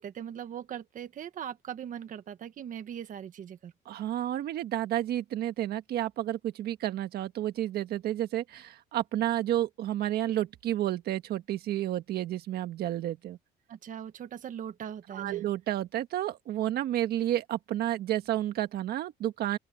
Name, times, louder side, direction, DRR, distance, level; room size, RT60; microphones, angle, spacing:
voice 1, 0.0-3.7 13.7-15.4, right 9 dB, 50° right, 1.5 m, -40 dB
voice 2, 3.8-13.4 15.1-19.6, right 13 dB, 70° right, 1.5 m, -31 dB
open air
cardioid pair, 110°, 17 cm